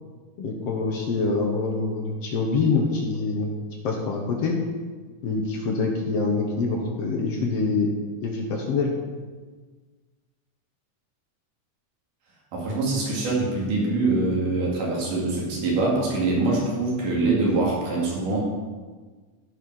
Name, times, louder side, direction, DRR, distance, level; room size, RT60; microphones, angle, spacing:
voice 1, 0.4-3.5 3.8-4.6 5.2-7.9 8.2-8.9, left 4 dB, 60° left, 1 dB, 2.0 m, -25 dB
voice 2, 12.5-18.4, right 2 dB, 75° right, -4 dB, 4.1 m, -24 dB
15.0 x 5.8 x 5.6 m, 1.4 s
omnidirectional pair, 3.7 m